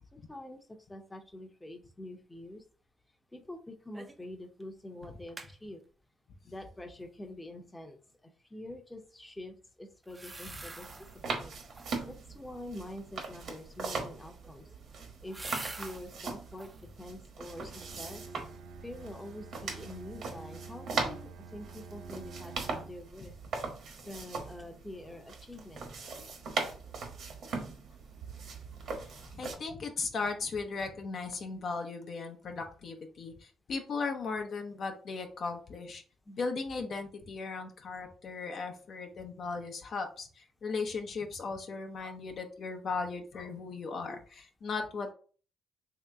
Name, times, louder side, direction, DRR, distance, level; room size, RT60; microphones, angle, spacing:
voice 1, 0.3-2.6 3.3-5.8 6.4-8.0 8.5-10.9 11.3-11.6 12.0-14.6 15.2-15.4 15.7-18.2 18.8-23.3 24.1-25.9 32.2-32.3 36.3-36.4 44.1-44.2, left 1 dB, 15° left, 4 dB, 0.7 m, -46 dB
sound 1, 3.9-4.3 4.6-4.7 5.0-5.5 10.0-11.2 11.6-12.1 14.1-16.1 16.5-16.9 17.4-18.0 18.4-18.5, right 2 dB, 20° right, 0.5 m, -46 dB
sound 2, 10.4-29.6, right 4 dB, 65° right, 1.1 m, -40 dB
Bowed string instrument, 17.5-23.1, right 4 dB, 85° right, 0.3 m, -48 dB
voice 2, 29.3-36.0 36.4-45.1, left 4 dB, 55° left, 4 dB, 0.6 m, -37 dB
3.2 x 2.8 x 3.5 m, 0.40 s
cardioid pair, 90°, 0 cm